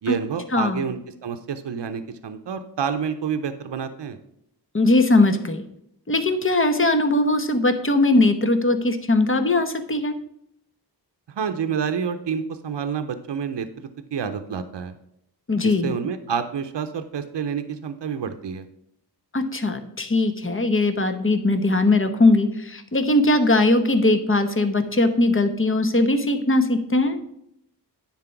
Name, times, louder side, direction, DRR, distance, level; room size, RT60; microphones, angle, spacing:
voice 1, 0.0-4.2 11.3-14.9 15.6-18.7, right 7 dB, 90° right, 9 dB, 0.7 m, -28 dB
voice 2, 0.5-0.8 4.7-5.6 6.1-10.1 15.5-15.9 19.3-27.2, left 2 dB, 30° left, 8 dB, 1.0 m, -20 dB
9.7 x 4.2 x 5.7 m, 0.75 s
wide cardioid pair, 60°, 41 cm